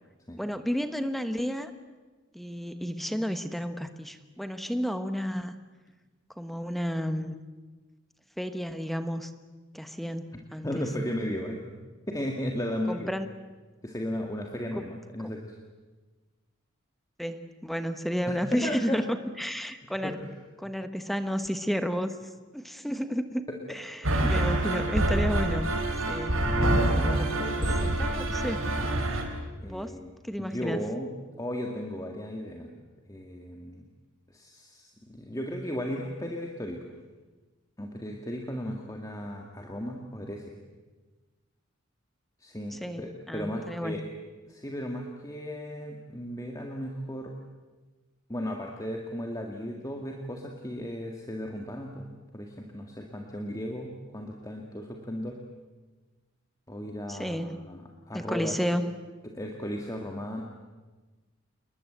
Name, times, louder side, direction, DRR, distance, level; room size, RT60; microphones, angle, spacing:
voice 1, 0.4-1.7 2.3-5.6 6.4-7.3 8.4-9.3 9.7-10.8 12.9-13.3 14.8-14.9 15.2-15.3 17.2-20.2 20.6-22.2 22.5-25.7 26.1-26.4 26.8-27.3 28.0-28.7 29.7-29.9 30.2-30.8 42.7-44.1 57.1-57.6 58.1-58.9, equal, ahead, 9 dB, 1.2 m, -32 dB
voice 2, 10.6-11.6 12.1-13.1 13.8-15.6 18.3-19.0 20.0-20.1 20.7-20.8 26.9-27.9 29.6-30.1 30.4-31.1 31.4-32.7 33.1-33.9 34.3-36.8 37.8-40.5 42.4-44.0 44.5-47.3 48.3-55.4 56.7-58.6 59.2-60.4, equal, 15° left, 1 dB, 2.0 m, -35 dB
sound 1, 24.0-29.2, right 1 dB, 85° right, 4.5 m, -26 dB
28.5 x 21.5 x 8.0 m, 1.3 s
head